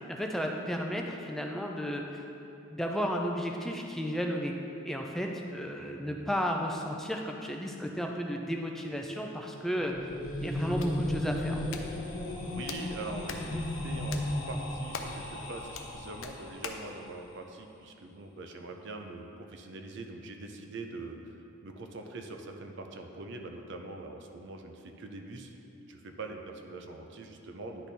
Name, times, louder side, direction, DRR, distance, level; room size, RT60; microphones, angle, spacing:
voice 1, 0.1-2.2 2.7-4.5 4.8-10.1 10.4-11.9, equal, ahead, 1 dB, 0.4 m, -33 dB
voice 2, 5.8-6.3 12.4-25.5 25.8-27.9, right 2 dB, 55° right, 4 dB, 0.5 m, -43 dB
sound 1, 9.9-16.7, left 1 dB, 40° left, 1.5 m, -35 dB
Hands, 10.4-16.9, left 5 dB, 70° left, 0.5 m, -46 dB
10.0 x 3.4 x 4.2 m, 2.8 s
head